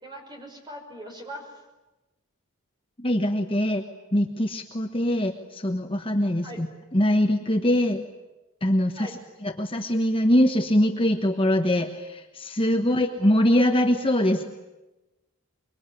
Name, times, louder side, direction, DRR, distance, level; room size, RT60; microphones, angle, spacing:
voice 1, 0.0-1.6 6.4-6.6 9.0-9.1 12.8-12.9, equal, 20° right, 2 dB, 6.0 m, -40 dB
voice 2, 3.0-3.8 4.1-6.7 6.9-8.0 8.6-9.1 9.4-14.4, left 1 dB, 25° left, 4 dB, 1.2 m, -23 dB
25.5 x 23.5 x 9.9 m, 1.1 s
head